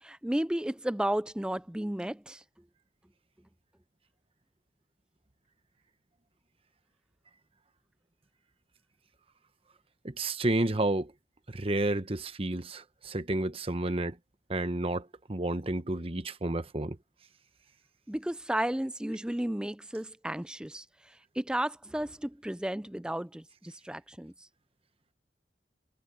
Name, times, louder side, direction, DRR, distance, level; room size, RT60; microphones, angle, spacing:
voice 1, 0.0-2.4 18.1-20.9 21.4-24.3, right 1 dB, 5° right, 0.4 m, -33 dB
voice 2, 10.0-11.1 11.5-14.2 14.5-17.0, right 2 dB, 30° right, 1.0 m, -31 dB
head